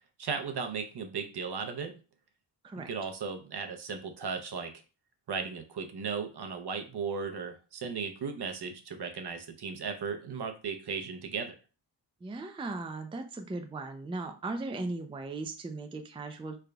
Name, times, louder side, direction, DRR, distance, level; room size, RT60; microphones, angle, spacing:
voice 1, 0.2-1.9 2.8-4.7 5.3-11.5, right 5 dB, 55° right, 5 dB, 0.7 m, -36 dB
voice 2, 12.2-16.6, right 3 dB, 10° right, 6 dB, 0.4 m, -37 dB
3.7 x 3.4 x 2.3 m, 0.35 s
cardioid pair, 60°, 47 cm